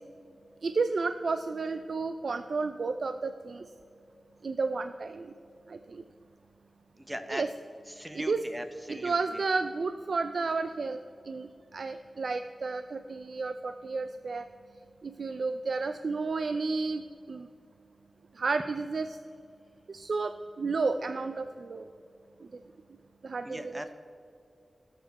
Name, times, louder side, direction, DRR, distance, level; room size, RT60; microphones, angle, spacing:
voice 1, 0.6-3.6 4.4-5.3 5.7-6.0 7.3-7.5 8.1-8.4 8.9-11.0 11.2-14.5 15.0-17.5 18.4-19.2 19.9-21.9 22.4-22.5 23.2-23.8, right 4 dB, 65° right, 9 dB, 0.4 m, -32 dB
voice 2, 7.0-7.4 7.9-9.4 23.4-23.9, equal, 10° right, 8 dB, 0.7 m, -39 dB
20.0 x 6.8 x 4.1 m, 2.6 s
wide cardioid pair, 120°, 0 cm